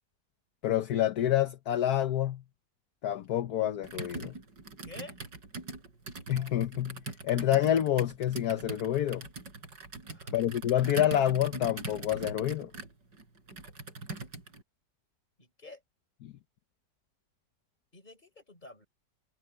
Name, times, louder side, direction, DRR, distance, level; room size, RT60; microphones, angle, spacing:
voice 1, 0.6-2.4 3.0-4.3 6.3-9.3 10.3-12.7 16.2-16.3, left 11 dB, 65° left, 1.3 m, -28 dB
Computer keyboard, 3.8-14.6, right 3 dB, 80° right, 5.0 m, -42 dB
voice 2, 4.9-5.2 10.1-10.4 15.4-15.8 17.9-18.9, left 2 dB, 25° left, 4.4 m, -49 dB
omnidirectional pair, 1.9 m